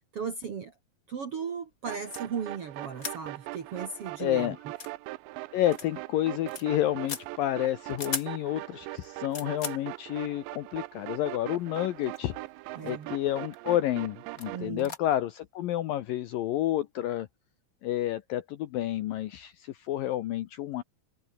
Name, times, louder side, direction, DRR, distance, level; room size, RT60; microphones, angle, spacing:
voice 1, 0.1-0.7 1.1-4.6 12.7-13.1 14.5-14.9, right 6 dB, 55° right, 1.7 m, -36 dB
sound 1, 1.9-14.7, right 20 dB, 90° right, 3.0 m, -41 dB
sound 2, 2.1-2.3 3.0-3.2 3.6-3.7 4.0-4.1 4.7-4.9 5.7-5.9 6.2-6.7 7.1-7.3 7.9-8.3 9.0-9.8 10.8-10.9 11.7-12.3 12.6-13.0 13.5-13.7 14.3-14.5 14.8-15.0, left 5 dB, 30° left, 1.7 m, -38 dB
voice 2, 4.2-4.6 5.5-12.3 12.8-17.3 17.8-20.8, left 13 dB, 75° left, 2.2 m, -30 dB
open air
omnidirectional pair, 5.1 m